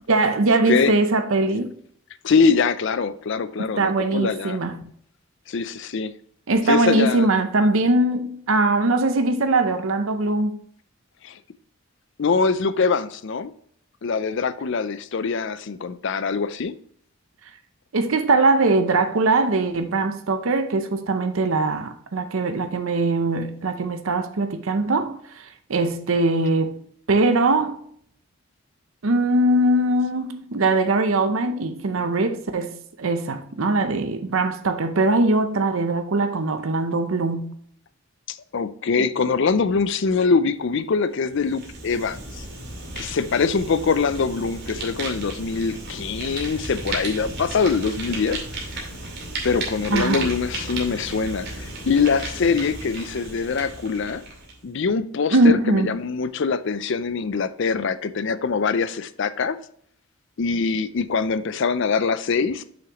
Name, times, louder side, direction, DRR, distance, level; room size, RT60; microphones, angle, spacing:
voice 1, 0.1-1.7 3.6-4.8 6.5-10.6 17.9-27.8 29.0-37.5 49.9-50.3 55.3-55.9, right 2 dB, 70° right, 0.7 m, -21 dB
voice 2, 2.2-4.6 5.5-6.1 6.7-7.3 11.2-11.4 12.2-13.5 14.0-16.7 38.3-42.4 43.0-48.4 49.4-54.2 54.6-59.6 60.4-62.6, left 5 dB, 55° left, 0.5 m, -23 dB
Fire, 41.2-54.6, right 2 dB, 50° right, 2.5 m, -34 dB
7.1 x 6.0 x 3.0 m
head